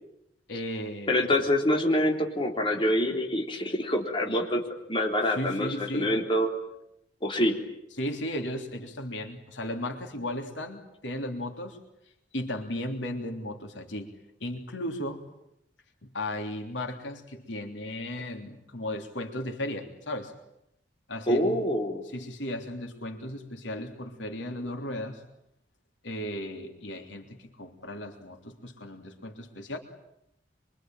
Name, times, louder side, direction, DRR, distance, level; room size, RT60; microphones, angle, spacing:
voice 1, 0.5-1.3 5.2-6.1 8.0-11.8 12.3-14.1 14.4-15.2 16.0-20.3 21.1-21.8 22.1-25.2 26.0-29.8, left 1 dB, 85° left, 4 dB, 3.3 m, -35 dB
voice 2, 1.1-4.6 4.9-6.5 7.2-7.6 21.3-22.0, left 1 dB, 30° left, 1 dB, 3.7 m, -26 dB
25.5 x 24.5 x 9.2 m, 0.81 s
head